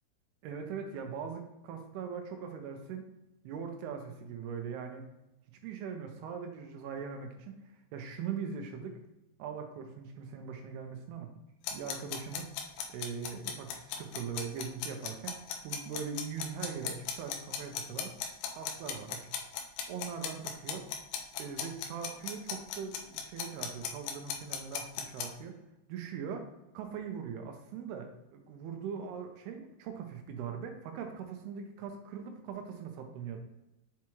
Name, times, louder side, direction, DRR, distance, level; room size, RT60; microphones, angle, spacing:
voice 1, 0.4-3.0 3.4-5.0 5.6-9.0 9.4-11.3 11.7-12.5 12.9-15.4 15.6-18.1 18.5-19.3 19.6-20.8 21.4-25.5 25.9-33.4, right 6 dB, 80° right, 4 dB, 2.6 m, -41 dB
sound 1, 11.6-25.3, left 8 dB, 85° left, 2.9 m, -37 dB
7.3 x 4.6 x 3.0 m, 0.94 s
omnidirectional pair, 4.7 m